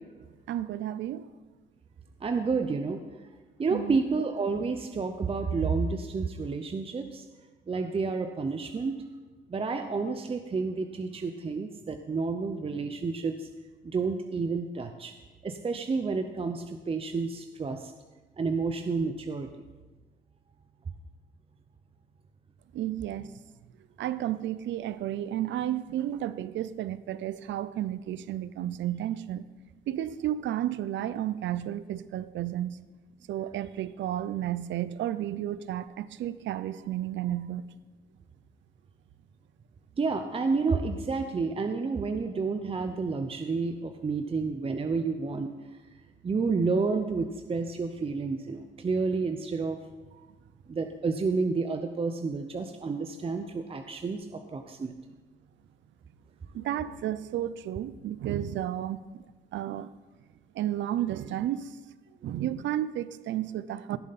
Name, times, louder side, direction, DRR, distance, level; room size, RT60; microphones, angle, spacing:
voice 1, 0.5-1.3 3.7-4.0 22.7-23.3 24.0-29.5 29.9-32.9 33.3-37.6 56.5-59.0 59.5-59.9 60.6-61.7 62.2-64.0, right 12 dB, 70° right, 15 dB, 0.5 m, -32 dB
voice 2, 2.2-3.0 3.6-7.2 7.7-8.9 9.5-13.5 13.8-15.1 15.4-17.9 18.4-19.5 40.0-45.5 46.2-49.8 50.7-54.9, right 4 dB, 30° right, 6 dB, 0.7 m, -30 dB
16.5 x 7.2 x 4.1 m, 1.3 s
cardioid pair, 90°, 20 cm